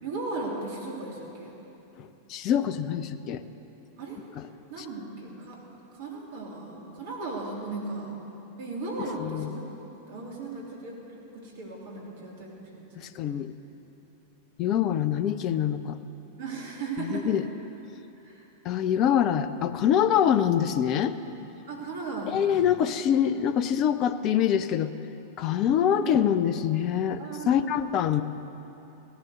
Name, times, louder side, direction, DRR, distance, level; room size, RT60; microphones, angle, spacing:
voice 1, 0.0-1.5 4.0-4.2 4.7-5.6 5.9-8.1 8.6-9.7 10.0-11.0 11.3-13.1 16.4-17.3 18.2-18.4 21.7-22.6 25.9-26.4 27.2-27.8, right 3 dB, 55° right, -2 dB, 3.1 m, -36 dB
voice 2, 2.0-3.4 4.8-4.9 9.2-9.5 13.0-13.5 14.6-16.0 17.0-17.4 18.6-21.1 22.3-24.9 25.4-28.2, left 9 dB, 40° left, 12 dB, 0.6 m, -25 dB
17.0 x 11.0 x 6.4 m, 3.0 s
figure-of-eight pair, 90°, 0 cm